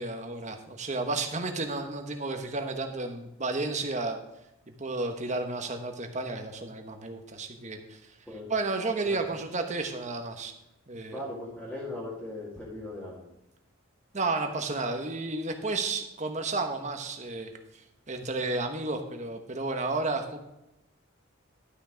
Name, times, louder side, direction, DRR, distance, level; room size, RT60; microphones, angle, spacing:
voice 1, 0.0-4.2 4.8-8.1 8.5-10.5 10.9-11.2 14.1-20.4, right 3 dB, 35° right, 5 dB, 1.2 m, -32 dB
voice 2, 11.1-13.3, left 1 dB, 5° left, -8 dB, 2.2 m, -38 dB
12.0 x 6.1 x 5.0 m, 0.90 s
head